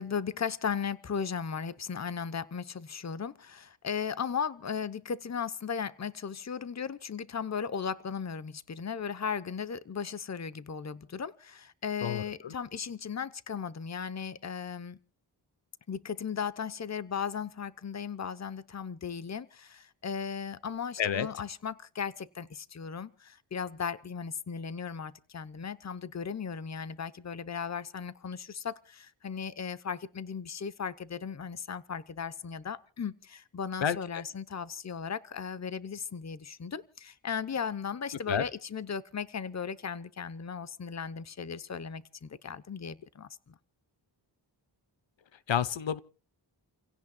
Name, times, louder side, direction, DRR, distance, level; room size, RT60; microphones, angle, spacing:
voice 1, 0.0-15.0 15.9-43.5, left 6 dB, 35° left, 0.9 m, -36 dB
voice 2, 12.0-12.5 21.0-21.3 33.8-34.2 38.3-38.4 45.5-46.0, left 8 dB, 80° left, 0.9 m, -30 dB
30.0 x 17.0 x 2.3 m
wide cardioid pair, 85°, 44 cm